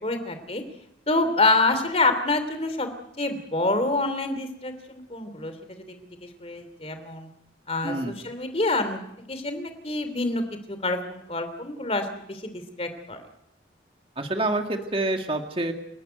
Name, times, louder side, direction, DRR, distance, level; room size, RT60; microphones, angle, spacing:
voice 1, 0.0-0.6 1.1-2.9 3.2-5.8 6.2-7.3 7.7-9.0 9.3-10.4 10.7-13.2, left 2 dB, 30° left, 8 dB, 2.9 m, -27 dB
voice 2, 7.8-8.1 14.2-15.7, right 2 dB, 30° right, 5 dB, 1.9 m, -27 dB
29.5 x 12.0 x 9.2 m, 0.82 s
head